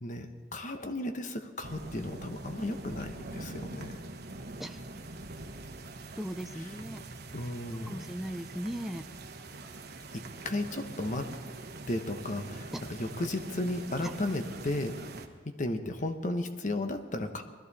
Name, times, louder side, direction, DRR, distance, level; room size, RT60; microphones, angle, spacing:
voice 1, 0.0-4.0 7.3-8.0 10.1-11.3 11.9-14.9 15.6-17.4, left 1 dB, 40° left, 7 dB, 1.0 m, -34 dB
sound 1, 1.6-15.3, right 2 dB, 55° right, 1.1 m, -44 dB
voice 2, 6.1-7.0 7.7-9.1 12.7-12.9 14.0-14.1, equal, ahead, 5 dB, 0.5 m, -38 dB
20.0 x 14.0 x 4.2 m, 1.5 s
head